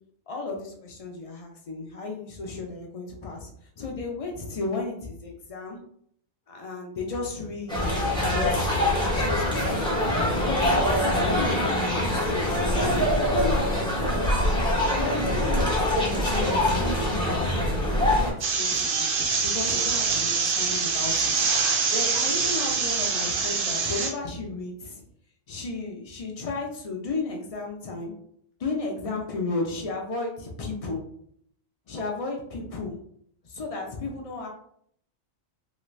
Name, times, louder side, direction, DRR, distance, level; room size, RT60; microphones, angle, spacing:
voice 1, 0.3-3.5 3.8-5.8 6.5-9.6 10.3-14.6 14.9-17.4 18.0-19.1 19.4-21.3 21.6-25.0 25.5-28.1 28.6-31.0 31.9-33.0 33.4-34.5, left 3 dB, 55° left, 0 dB, 0.4 m, -33 dB
sound 1, 7.7-18.3, left 1 dB, 5° left, 0.6 m, -24 dB
sound 2, 18.4-24.1, right 5 dB, 60° right, 0.6 m, -25 dB
3.0 x 2.5 x 3.1 m, 0.67 s
omnidirectional pair, 1.4 m